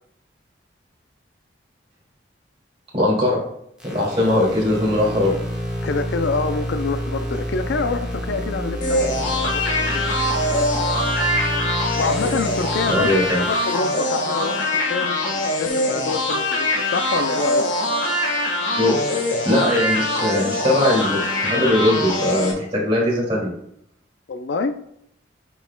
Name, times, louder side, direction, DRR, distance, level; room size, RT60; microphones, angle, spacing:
voice 1, 2.9-3.5 3.8-5.3 12.9-13.4 18.8-19.1 19.4-23.5, left 1 dB, 30° right, -4 dB, 2.3 m, -20 dB
sound 1, 3.8-13.7, equal, 5° right, 1.1 m, -28 dB
voice 2, 5.8-10.1 11.9-13.2 13.5-17.6 24.3-24.8, left 4 dB, 65° left, 9 dB, 0.4 m, -26 dB
sound 2, 8.8-22.5, left 1 dB, 85° left, 1.4 m, -23 dB
9.8 x 4.6 x 2.2 m, 0.71 s
head